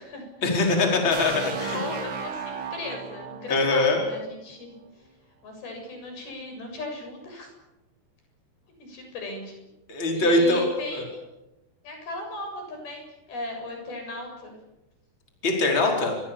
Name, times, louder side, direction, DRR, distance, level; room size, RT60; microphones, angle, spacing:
voice 1, 0.4-1.8 3.5-4.0 9.9-11.0 15.4-16.2, left 2 dB, 30° left, 0 dB, 5.5 m, -22 dB
sound 1, 1.1-4.9, right 5 dB, 85° right, 5.2 m, -35 dB
voice 2, 1.4-5.1 5.4-7.5 8.8-9.5 10.1-11.2 11.8-14.5 15.9-16.1, left 2 dB, 70° left, 3 dB, 9.2 m, -37 dB
29.5 x 24.5 x 7.2 m, 0.96 s
omnidirectional pair, 4.6 m